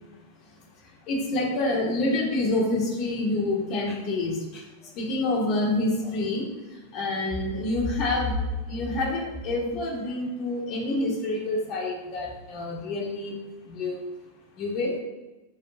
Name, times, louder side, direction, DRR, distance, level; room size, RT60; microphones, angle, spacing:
voice 1, 1.1-4.6 5.0-6.5 6.9-8.4 8.7-13.4 13.7-14.0 14.6-14.9, left 2 dB, 40° left, -1 dB, 2.3 m, -27 dB
10.5 x 7.5 x 2.8 m, 1.1 s
figure-of-eight pair, 90°, 0 cm